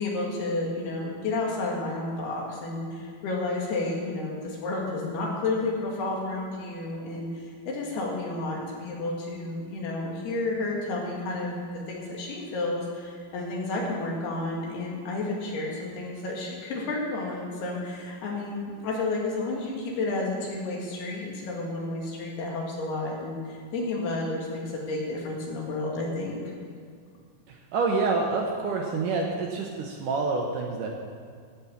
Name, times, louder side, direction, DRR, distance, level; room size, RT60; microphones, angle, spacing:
voice 1, 0.0-11.6 11.9-24.6 24.9-26.4, left 2 dB, 75° left, -2 dB, 4.1 m, -31 dB
voice 2, 27.5-30.9, right 4 dB, 70° right, 0 dB, 2.1 m, -27 dB
16.5 x 6.0 x 7.0 m, 2.1 s
omnidirectional pair, 4.6 m